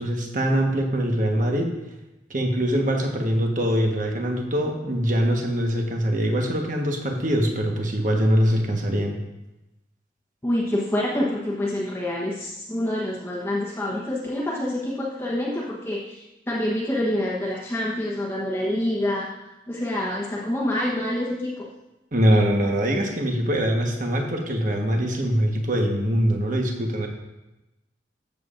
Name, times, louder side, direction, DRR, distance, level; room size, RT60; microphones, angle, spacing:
voice 1, 0.0-1.7 2.3-9.2 22.1-27.1, equal, 45° right, 1 dB, 1.3 m, -23 dB
voice 2, 10.4-19.3 19.7-21.7, left 1 dB, 15° left, -6 dB, 1.1 m, -27 dB
13.5 x 7.3 x 2.6 m, 0.99 s
head